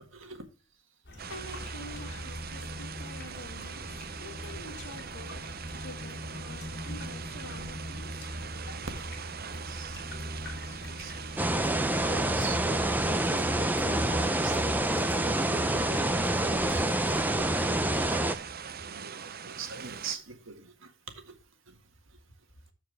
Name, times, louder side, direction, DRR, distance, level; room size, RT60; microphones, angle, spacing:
voice 1, 0.1-0.4 9.5-10.0 10.9-11.8 12.1-14.8 15.3-16.8 17.3-17.4 17.7-17.9 18.8-20.7 21.3-21.4, right 6 dB, 70° right, 6 dB, 1.7 m, -45 dB
sound 1, 1.0-18.3, left 1 dB, 55° left, 2.9 m, -42 dB
sound 2, 1.2-20.2, right 6 dB, 50° right, 0.7 m, -42 dB
voice 2, 1.3-3.9 4.2-5.5 5.7-8.2, left 1 dB, 85° left, 6 dB, 2.0 m, -47 dB
sound 3, 11.4-18.4, right 1 dB, 10° right, 0.6 m, -27 dB
13.5 x 4.8 x 3.3 m, 0.32 s
head